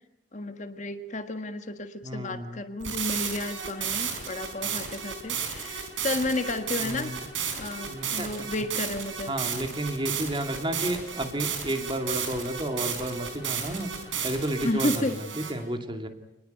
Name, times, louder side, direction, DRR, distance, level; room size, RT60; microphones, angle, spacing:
voice 1, 0.3-7.1 7.6-9.3 14.6-15.2, left 2 dB, 35° left, 8 dB, 1.6 m, -32 dB
voice 2, 2.0-2.6 6.8-7.2 7.9-8.5 9.3-15.1 15.4-16.1, right 1 dB, 25° right, 6 dB, 2.5 m, -32 dB
sound 1, 2.8-15.5, right 7 dB, 75° right, 5.1 m, -33 dB
28.0 x 20.0 x 9.2 m, 0.88 s
head